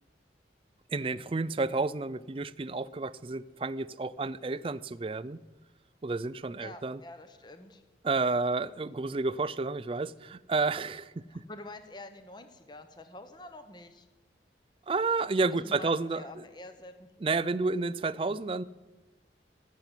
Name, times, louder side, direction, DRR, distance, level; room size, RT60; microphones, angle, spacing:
voice 1, 0.9-5.4 6.0-7.0 8.0-11.4 14.9-16.4 17.2-18.6, right 3 dB, 30° right, 17 dB, 0.4 m, -31 dB
voice 2, 6.6-7.8 11.3-14.1 15.5-17.1, left 2 dB, 25° left, 8 dB, 0.9 m, -47 dB
14.5 x 7.6 x 9.8 m, 1.2 s
head